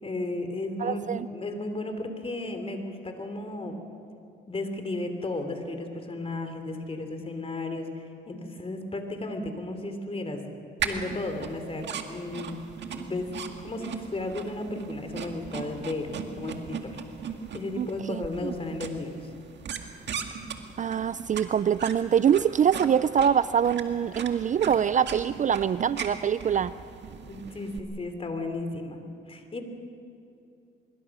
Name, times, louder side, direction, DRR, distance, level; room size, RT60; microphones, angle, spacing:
voice 1, 0.0-3.8 4.5-10.6 10.8-12.6 12.9-13.3 13.6-17.0 17.5-19.1 27.3-29.0 29.3-29.6, left 2 dB, 30° left, 6 dB, 3.3 m, -34 dB
voice 2, 0.8-1.3 17.8-18.5 20.8-26.7, right 8 dB, 40° right, 16 dB, 0.4 m, -24 dB
sound 1, 10.8-27.8, right 7 dB, 60° right, 1.9 m, -38 dB
24.5 x 23.0 x 6.2 m, 2.6 s
cardioid pair, 90°, 20 cm